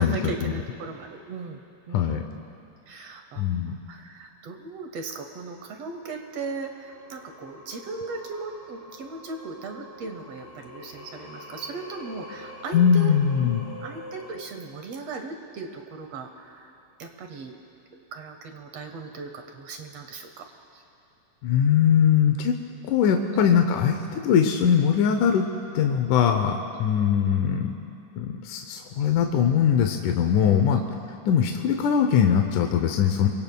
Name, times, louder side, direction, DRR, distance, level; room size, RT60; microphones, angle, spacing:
voice 1, 0.0-1.6 1.9-2.4 2.9-13.1 13.4-13.6 13.8-16.7 17.0-17.6 18.1-20.5 20.7-20.8 23.3-23.5 26.8-26.9 30.7-30.9, right 4 dB, 70° right, 5 dB, 1.6 m, -37 dB
voice 2, 1.9-2.2 3.4-3.7 12.7-13.7 21.4-22.5 22.8-25.5 25.7-27.7 28.2-30.8 31.3-33.3, left 8 dB, 75° left, 4 dB, 2.2 m, -21 dB
Singing, 6.2-14.4, left 1 dB, 40° left, 4.6 m, -45 dB
27.0 x 23.0 x 2.3 m, 3.0 s
omnidirectional pair, 3.8 m